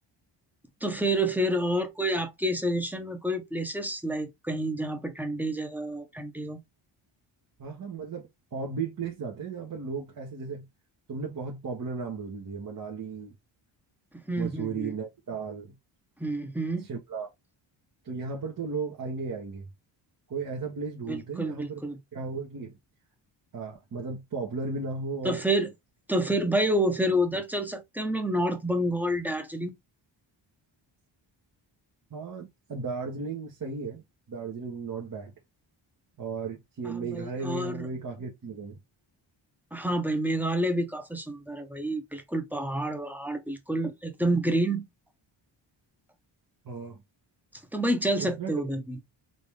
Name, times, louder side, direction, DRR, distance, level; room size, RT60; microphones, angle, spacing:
voice 1, 0.8-6.6 14.3-14.9 16.2-16.9 21.1-22.0 25.2-25.7 26.1-29.7 36.8-37.9 39.7-44.8 47.7-49.0, right 1 dB, 5° right, 1.1 m, -28 dB
voice 2, 7.6-8.2 8.5-10.7 11.1-13.3 14.4-15.7 16.9-17.3 18.0-19.7 20.3-21.8 22.1-22.7 23.5-25.4 32.1-34.0 34.3-35.3 36.2-38.8 46.6-47.0 48.1-48.6, right 4 dB, 45° right, 1.5 m, -35 dB
4.2 x 3.0 x 3.4 m
cardioid pair, 105°, 47 cm